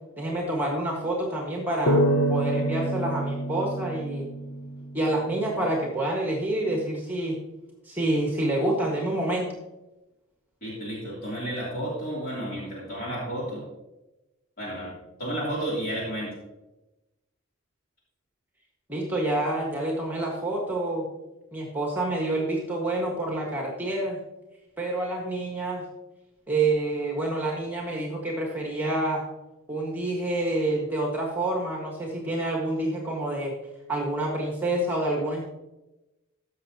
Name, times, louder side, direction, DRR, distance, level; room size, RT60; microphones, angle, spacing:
voice 1, 0.2-4.3 4.9-7.4 7.8-9.5 18.9-21.0 21.5-24.2 24.8-25.8 26.5-29.2 29.7-33.5 33.9-35.4, right 1 dB, 10° right, -1 dB, 1.5 m, -28 dB
sound 1, 1.9-5.2, right 1 dB, 60° left, 1.0 m, -26 dB
voice 2, 10.6-13.6 14.6-14.9 15.2-16.3, right 1 dB, 45° left, -6 dB, 3.1 m, -32 dB
14.5 x 6.5 x 2.9 m, 0.99 s
head